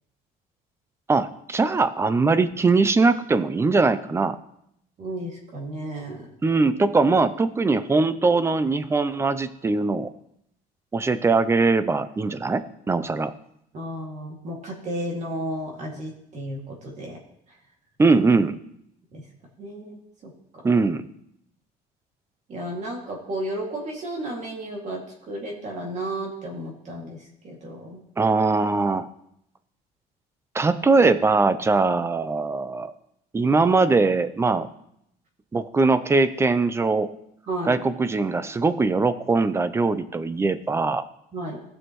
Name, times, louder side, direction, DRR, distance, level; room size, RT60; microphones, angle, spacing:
voice 1, 1.1-4.4 6.4-10.1 10.9-13.3 18.0-18.6 20.6-21.1 28.2-29.1 30.5-32.9 33.3-34.7 35.5-37.1 37.7-41.0, right 3 dB, 15° right, 13 dB, 0.5 m, -21 dB
voice 2, 5.0-6.3 13.7-17.2 19.1-19.2 19.6-20.3 22.5-25.0 25.3-27.2 27.4-28.0 37.5-37.8 41.3-41.6, right 1 dB, 40° right, -1 dB, 2.3 m, -33 dB
17.5 x 6.4 x 3.1 m, 0.75 s
cardioid pair, 145°, 18 cm